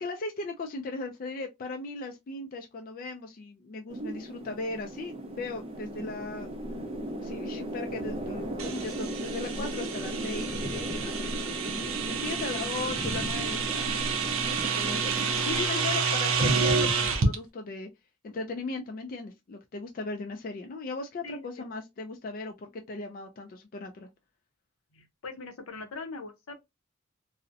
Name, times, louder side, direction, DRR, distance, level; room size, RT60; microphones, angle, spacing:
voice 1, 0.0-6.5 7.2-11.3 12.1-17.9 18.2-24.1, left 3 dB, 40° left, 0.3 m, -37 dB
sound 1, 3.9-15.7, right 1 dB, 30° right, 0.4 m, -36 dB
sound 2, 8.6-17.4, right 5 dB, 80° right, 0.5 m, -29 dB
voice 2, 15.5-15.8 21.2-21.5 24.9-26.6, left 3 dB, 80° left, 0.6 m, -40 dB
2.6 x 2.0 x 2.4 m
head